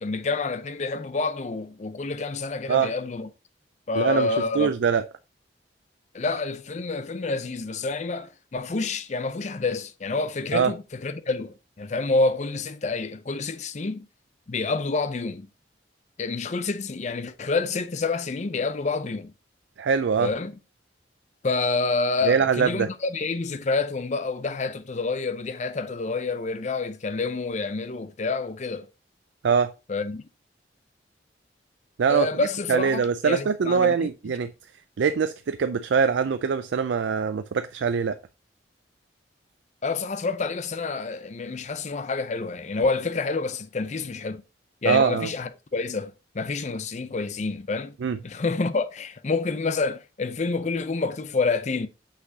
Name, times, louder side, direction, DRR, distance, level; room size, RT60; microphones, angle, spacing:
voice 1, 0.0-3.3 3.9-4.7 6.1-14.1 14.5-15.5 16.2-19.3 20.2-20.5 21.4-28.9 29.9-30.2 32.1-34.1 39.8-44.4 44.8-48.0 48.2-51.9, left 3 dB, 40° left, 0.5 m, -28 dB
voice 2, 4.0-4.3 4.5-5.0 10.5-10.7 19.8-20.3 22.2-22.9 29.4-29.7 32.0-32.3 32.7-34.5 35.0-38.2 44.9-45.3 48.0-48.2, right 6 dB, 85° right, 0.4 m, -23 dB
6.0 x 5.8 x 2.8 m
head